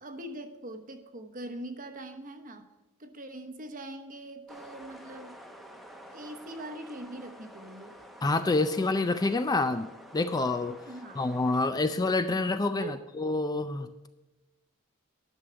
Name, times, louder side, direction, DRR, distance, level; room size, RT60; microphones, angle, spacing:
voice 1, 0.0-2.7 3.0-5.4 6.1-8.0 10.9-11.2 12.8-13.0, right 1 dB, 40° right, 1.0 m, -42 dB
sound 1, 4.5-11.7, equal, ahead, 0.8 m, -49 dB
voice 2, 8.2-9.9 10.1-10.8 11.2-14.1, left 2 dB, 20° left, 0.4 m, -27 dB
11.0 x 6.4 x 6.9 m
head